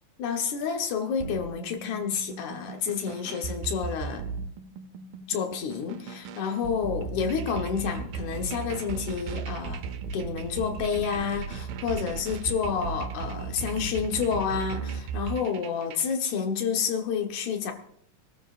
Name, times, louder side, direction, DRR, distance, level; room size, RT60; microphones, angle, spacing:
voice 1, 0.2-4.2 5.3-9.8 10.1-17.7, left 6 dB, 65° left, 4 dB, 2.5 m, -29 dB
sound 1, 1.2-16.1, right 6 dB, 90° right, 2.7 m, -36 dB
26.0 x 13.5 x 2.6 m, 0.66 s
omnidirectional pair, 4.0 m